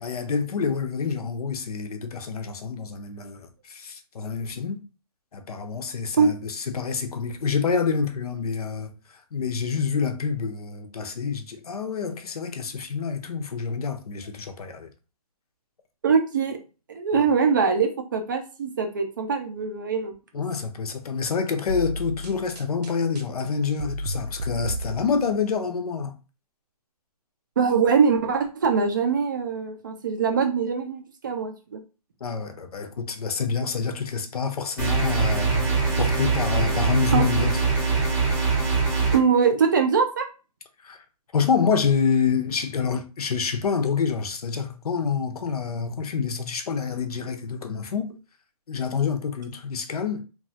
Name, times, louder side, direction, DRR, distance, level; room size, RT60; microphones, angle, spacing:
voice 1, 0.0-4.8 5.3-8.9 9.3-14.9 17.1-17.2 20.3-26.1 32.2-35.7 36.0-37.6 40.8-41.0 41.3-48.1 48.7-50.2, left 5 dB, 70° left, 0.6 m, -27 dB
voice 2, 16.0-16.6 16.9-20.1 27.6-31.8 37.1-37.2 39.1-40.3, right 5 dB, 30° right, 0.4 m, -22 dB
sound 1, 21.7-25.4, equal, 85° right, 0.5 m, -33 dB
sound 2, 34.8-39.2, right 4 dB, 10° right, 0.8 m, -23 dB
2.9 x 2.3 x 2.7 m
hypercardioid pair, 165°, 20 cm